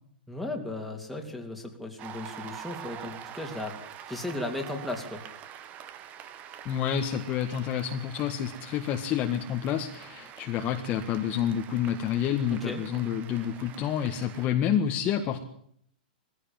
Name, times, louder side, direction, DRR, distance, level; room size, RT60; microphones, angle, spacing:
voice 1, 0.3-3.8 4.1-5.2 12.6-12.8, left 2 dB, ahead, 1 dB, 3.2 m, -36 dB
Cheering / Applause, 2.0-14.5, right 10 dB, 30° right, 1.4 m, -45 dB
voice 2, 6.6-15.4, left 9 dB, 30° left, 4 dB, 1.7 m, -29 dB
20.0 x 15.5 x 9.0 m, 0.66 s
hypercardioid pair, 145°, 5 cm